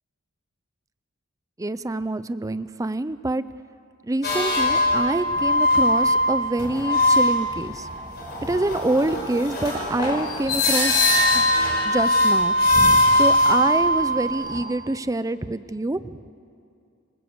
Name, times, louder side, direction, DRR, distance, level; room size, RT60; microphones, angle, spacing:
voice 1, 1.6-3.4 4.1-7.9 8.4-11.4 11.8-12.5 13.1-16.2, right 2 dB, 15° right, 14 dB, 0.5 m, -26 dB
sound 1, 4.2-14.6, left 1 dB, 50° left, 4.9 m, -21 dB
25.5 x 21.0 x 7.9 m, 2.4 s
head